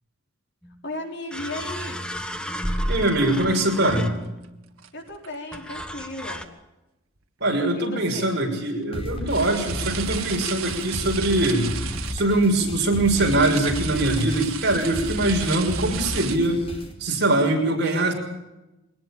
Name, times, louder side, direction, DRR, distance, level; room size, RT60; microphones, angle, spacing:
sound 1, 0.6-0.7 1.3-4.6 5.5-6.4, equal, 5° left, 1.4 m, -31 dB
voice 1, 0.8-2.0 4.9-6.5 7.7-8.3, left 2 dB, 55° left, 2 dB, 5.0 m, -35 dB
sound 2, 2.8-2.9 3.1-3.3 3.7-3.8 4.0-4.5 4.8-5.6 7.2-7.3 9.3-12.2 13.1-16.4, right 10 dB, 85° right, 1.9 m, -35 dB
voice 2, 2.9-4.1 7.4-11.8 12.1-16.6 17.0-18.1, right 2 dB, 55° right, 1 dB, 6.3 m, -22 dB
sound 3, 8.9-16.9, left 1 dB, 30° left, 4.7 m, -33 dB
23.0 x 19.5 x 7.4 m, 0.96 s
head